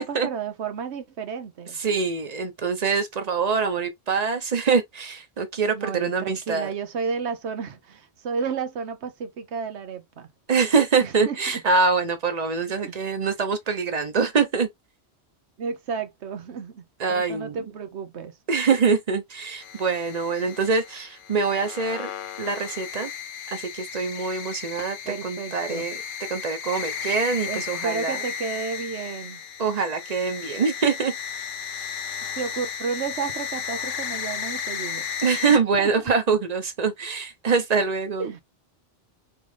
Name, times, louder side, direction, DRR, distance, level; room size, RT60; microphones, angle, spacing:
voice 1, 0.0-1.8 5.7-10.3 11.0-11.4 12.8-12.9 15.6-16.8 17.1-18.4 25.0-25.9 27.4-29.4 32.4-35.1 35.5-35.9 38.2-38.4, right 6 dB, 85° right, 1.1 m, -32 dB
voice 2, 1.7-6.7 10.5-14.7 17.0-17.6 18.5-22.1 22.4-23.1 23.5-26.0 26.3-28.2 29.6-31.1 35.2-38.3, right 5 dB, 40° right, 0.8 m, -24 dB
sound 1, 19.6-35.6, left 7 dB, 60° left, 0.7 m, -34 dB
3.7 x 3.5 x 3.2 m
omnidirectional pair, 1.1 m